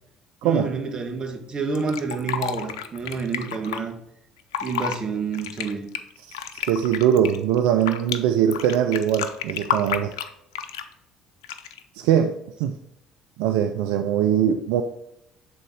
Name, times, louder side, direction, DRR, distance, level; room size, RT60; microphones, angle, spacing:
voice 1, 0.4-4.0 4.6-5.9, right 4 dB, 35° right, 2 dB, 1.3 m, -29 dB
Fill (with liquid), 1.8-3.8 4.4-5.0 5.3-8.2 8.5-10.9 11.4-11.8, left 8 dB, 85° left, 0.4 m, -30 dB
voice 2, 6.3-10.1 12.0-12.3 12.6-12.7 13.4-14.8, right 9 dB, 75° right, 6 dB, 0.4 m, -21 dB
7.1 x 3.8 x 4.8 m, 0.81 s
hypercardioid pair, 55°, 3 cm